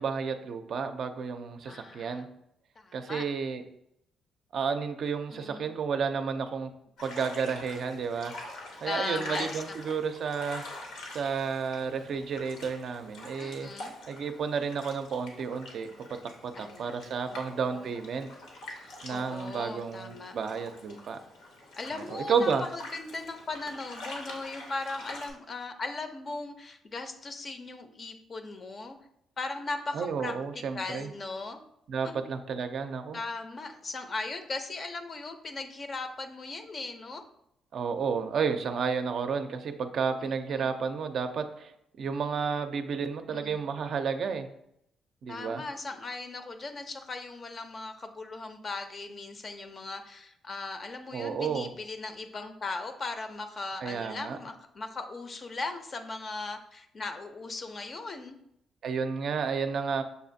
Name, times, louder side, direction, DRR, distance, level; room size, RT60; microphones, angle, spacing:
voice 1, 0.0-2.3 2.9-3.6 4.5-6.7 7.0-8.3 8.8-10.6 11.1-13.7 14.1-15.9 16.4-18.3 19.0-21.2 21.9-22.6 29.9-31.1 31.9-33.2 37.7-44.5 45.2-45.6 51.1-51.7 53.8-54.4 58.8-60.0, right 6 dB, 65° right, 7 dB, 0.4 m, -31 dB
voice 2, 1.7-2.3 2.8-3.2 5.3-5.7 8.8-10.0 13.4-13.9 16.5-17.0 17.3-17.9 18.8-20.4 21.8-29.0 29.4-30.3 30.7-31.6 32.0-32.2 33.1-37.2 40.5-40.8 43.3-43.6 45.3-58.4, left 3 dB, 40° left, 7 dB, 0.5 m, -38 dB
sound 1, 7.0-25.3, left 2 dB, 90° left, 1.0 m, -45 dB
6.7 x 2.4 x 2.6 m, 0.77 s
cardioid pair, 90°, 0 cm